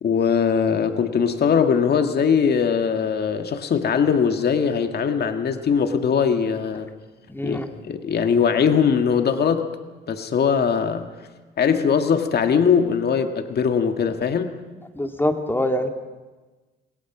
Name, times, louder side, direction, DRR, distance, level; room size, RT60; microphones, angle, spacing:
voice 1, 0.0-6.9 7.4-9.7 10.1-11.1 11.6-14.5, left 6 dB, 55° left, 6 dB, 1.9 m, -21 dB
voice 2, 7.3-7.7 14.9-15.9, left 1 dB, 10° left, 5 dB, 2.5 m, -24 dB
27.0 x 21.0 x 6.1 m, 1.3 s
cardioid pair, 90°, 20 cm